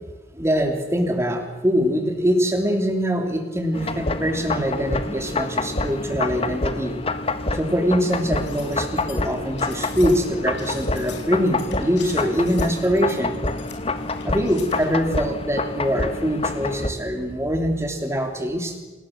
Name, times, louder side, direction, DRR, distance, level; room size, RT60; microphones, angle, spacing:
voice 1, 0.3-7.0 7.5-13.4 14.2-18.8, equal, 15° right, 5 dB, 3.2 m, -23 dB
sound 1, 3.7-16.9, left 2 dB, 30° left, 1.4 m, -27 dB
sound 2, 8.1-14.9, left 7 dB, 70° left, 5.3 m, -44 dB
27.5 x 19.5 x 7.5 m, 1.2 s
head